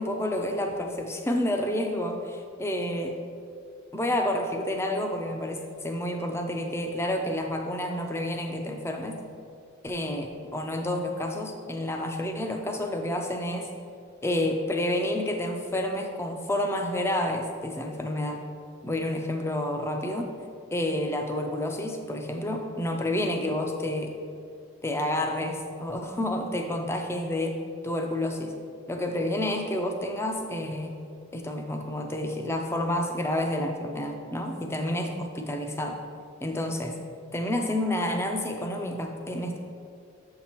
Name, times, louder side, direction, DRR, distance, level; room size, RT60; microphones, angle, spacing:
voice 1, 0.0-3.2 3.9-9.2 9.8-10.3 10.5-13.7 14.2-18.4 18.8-20.3 20.7-24.1 24.8-27.6 27.8-28.5 28.9-30.9 31.3-36.0 36.4-37.0 37.3-39.6, left 1 dB, 10° left, 3 dB, 0.4 m, -29 dB
7.2 x 5.7 x 2.9 m, 2.4 s
head